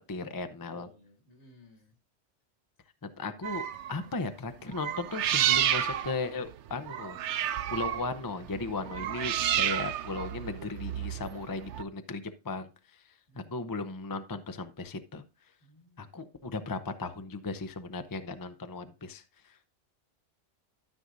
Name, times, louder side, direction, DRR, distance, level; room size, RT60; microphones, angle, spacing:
voice 1, 0.1-0.9 3.0-7.4 7.7-12.7 13.3-15.2 16.0-19.7, left 3 dB, 25° left, 0.5 m, -36 dB
voice 2, 0.7-2.0 13.3-13.5 15.6-16.3, left 2 dB, 65° left, 2.3 m, -58 dB
sound 1, 3.4-4.0 4.7-11.8, right 11 dB, 75° right, 0.9 m, -31 dB
13.0 x 6.3 x 2.6 m
omnidirectional pair, 1.3 m